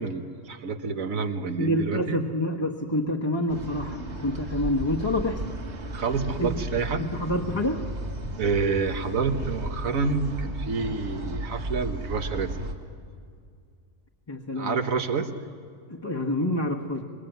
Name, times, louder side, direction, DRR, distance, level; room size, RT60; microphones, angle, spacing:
voice 1, 0.0-2.3 5.9-7.0 8.4-12.5 14.6-15.3, right 4 dB, 85° right, 8 dB, 1.7 m, -28 dB
voice 2, 1.6-5.5 6.4-6.6 7.0-7.9 14.3-14.8 15.9-17.0, left 1 dB, 20° left, -1 dB, 1.3 m, -27 dB
sound 1, 3.5-12.7, right 1 dB, 55° right, 2.2 m, -34 dB
26.0 x 22.5 x 9.2 m, 2.2 s
omnidirectional pair, 1.4 m